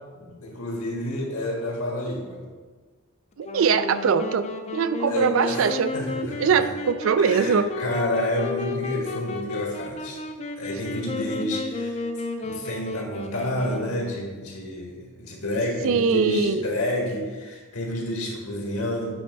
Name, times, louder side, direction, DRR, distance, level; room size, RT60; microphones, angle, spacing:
voice 1, 0.2-2.4 5.1-6.6 7.2-10.2 10.6-12.0 12.4-19.1, left 1 dB, 85° left, -1 dB, 1.7 m, -30 dB
Wind instrument woodwind instrument, 3.4-14.3, left 3 dB, 30° left, 0.4 m, -33 dB
voice 2, 3.4-4.5 4.7-7.7 15.8-16.7, right 6 dB, 65° right, 12 dB, 0.4 m, -22 dB
8.8 x 3.4 x 5.2 m, 1.4 s
head